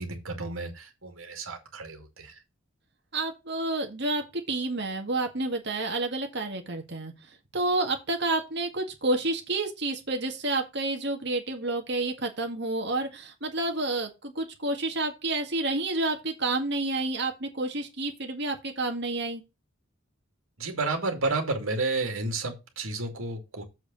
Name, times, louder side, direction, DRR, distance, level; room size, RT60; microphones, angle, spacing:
voice 1, 0.0-2.3 20.6-23.6, right 3 dB, 70° right, 2.4 m, -31 dB
voice 2, 3.1-7.1 7.5-19.4, right 2 dB, 55° right, 1.9 m, -29 dB
7.4 x 4.8 x 6.0 m
head